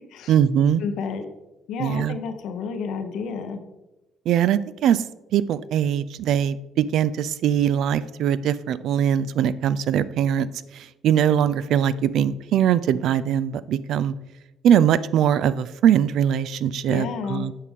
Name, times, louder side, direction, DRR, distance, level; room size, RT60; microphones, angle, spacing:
voice 1, 0.3-0.8 1.8-2.2 4.3-5.0 5.3-10.5 10.7-14.1 14.6-17.5, right 9 dB, 70° right, 16 dB, 0.3 m, -21 dB
voice 2, 0.8-1.2 1.7-3.6 16.9-17.5, left 5 dB, 75° left, 7 dB, 0.8 m, -30 dB
8.2 x 4.7 x 3.6 m, 1.0 s
cardioid pair, 85°, 0 cm